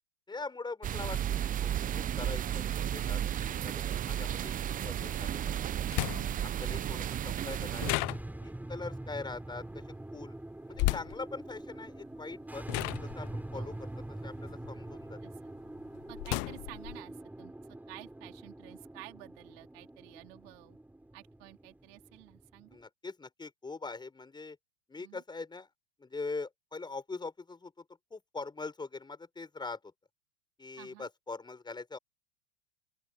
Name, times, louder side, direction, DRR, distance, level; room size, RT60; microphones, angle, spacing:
voice 1, 0.3-1.2 1.6-5.6 6.4-8.0 8.4-9.6 10.1-10.4 10.7-13.9 14.2-15.2 22.7-24.6 24.9-25.7 26.0-27.8 28.1-29.8 30.6-32.0, left 3 dB, 15° left, 6.8 m, -42 dB
sound 1, 0.8-7.9, right 10 dB, 25° right, 0.9 m, -33 dB
sound 2, 3.1-3.2 5.2-5.3 5.9-6.5 7.8-8.7 10.7-11.2 12.1-12.3 12.7-15.1 15.5-17.0, left 29 dB, 45° left, 0.7 m, -34 dB
sound 3, 7.6-22.8, right 1 dB, 5° right, 7.9 m, -44 dB
voice 2, 16.1-17.5 17.9-20.8 21.1-22.8 25.0-25.2 30.8-31.1, right 30 dB, 55° right, 3.8 m, -51 dB
open air
hypercardioid pair, 95°, 34 cm